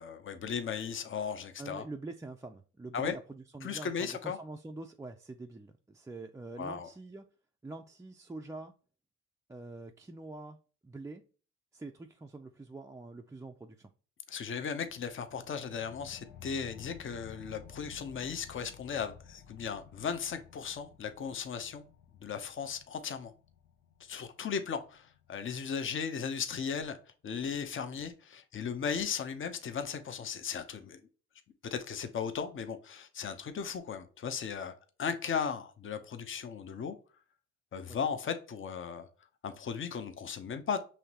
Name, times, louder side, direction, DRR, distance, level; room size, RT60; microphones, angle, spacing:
voice 1, 0.0-1.8 2.9-3.1 3.6-4.4 6.6-6.9 14.3-21.8 22.2-23.3 24.0-27.0 27.2-31.0 31.7-34.7 35.0-37.0 37.7-39.1 39.4-40.8, left 6 dB, 40° left, 0.7 m, -36 dB
voice 2, 1.6-7.2 7.6-8.7 9.5-10.6 10.8-11.2 11.7-13.9 37.9-38.0, right 2 dB, 10° right, 0.4 m, -45 dB
sound 1, 14.8-25.9, left 7 dB, 85° left, 0.9 m, -54 dB
5.7 x 3.1 x 2.8 m
cardioid pair, 90°, 30 cm